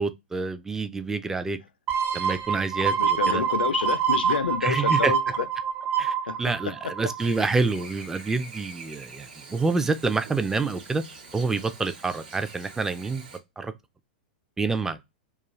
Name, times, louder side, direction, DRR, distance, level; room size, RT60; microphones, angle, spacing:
voice 1, 0.0-1.6 2.1-3.4 4.6-5.1 6.0-11.0 11.3-13.2 13.6-13.7 14.6-15.0, right 4 dB, 10° right, 0.3 m, -27 dB
sound 1, 1.9-7.4 7.8-7.9, right 7 dB, 40° right, 0.7 m, -26 dB
voice 2, 2.9-5.5 6.3-6.4 6.6-7.1, left 7 dB, 80° left, 0.4 m, -29 dB
Chirp tweet / Buzz, 7.2-13.4, right 4 dB, 75° right, 1.1 m, -45 dB
2.3 x 2.3 x 3.0 m
hypercardioid pair, 105°, 5 cm